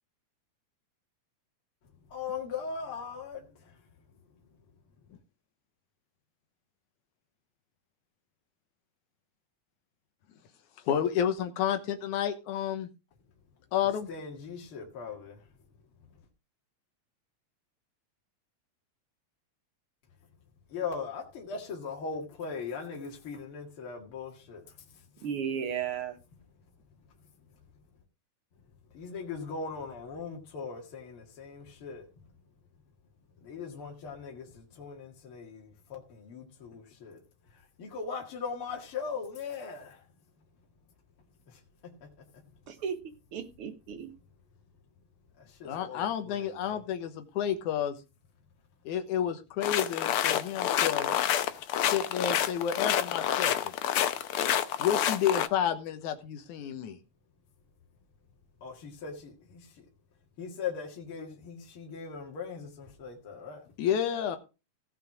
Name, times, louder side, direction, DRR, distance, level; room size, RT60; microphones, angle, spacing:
voice 1, 2.1-3.7 14.1-15.4 20.7-24.6 28.9-32.1 33.4-37.2 37.8-40.0 41.5-41.6 42.0-42.1 45.4-46.8 58.6-59.7 60.4-63.6, left 5 dB, 50° left, 2.6 m, -39 dB
voice 2, 10.9-12.9 13.7-14.1 45.7-48.0 48.9-51.1 51.8-53.7 54.8-57.0 63.8-64.4, left 9 dB, 90° left, 2.6 m, -30 dB
voice 3, 25.2-26.2 42.7-43.0 43.3-44.1, right 7 dB, 60° right, 1.7 m, -34 dB
sound 1, 49.6-55.5, left 10 dB, 75° left, 1.3 m, -28 dB
16.5 x 5.9 x 4.8 m
omnidirectional pair, 3.4 m